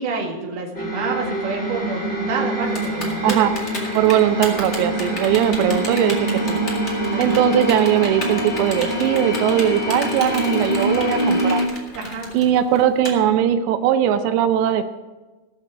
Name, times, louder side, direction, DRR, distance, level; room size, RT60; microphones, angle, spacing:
voice 1, 0.0-3.4 7.1-7.4 11.9-12.4, right 4 dB, 55° right, -1 dB, 3.3 m, -28 dB
sound 1, 0.7-11.7, right 1 dB, 20° left, 2.1 m, -24 dB
Typing, 2.7-13.1, left 2 dB, 40° left, 1.0 m, -32 dB
voice 2, 3.9-6.6 7.2-11.6 12.3-14.8, right 10 dB, 90° right, 9 dB, 2.9 m, -19 dB
19.0 x 6.9 x 5.0 m, 1.2 s
omnidirectional pair, 4.8 m